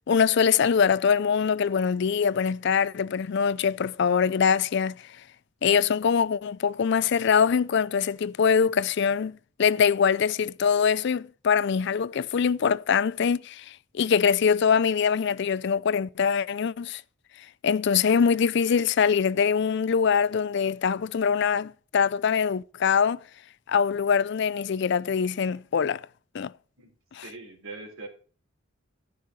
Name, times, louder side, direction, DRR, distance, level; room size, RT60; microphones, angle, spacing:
voice 1, 0.1-5.0 5.6-17.0 17.6-23.2 23.7-26.0 26.3-26.5 27.1-27.2, left 6 dB, 60° left, 0.4 m, -23 dB
voice 2, 27.2-28.1, right 3 dB, 85° right, 3.8 m, -41 dB
12.5 x 5.7 x 6.2 m
head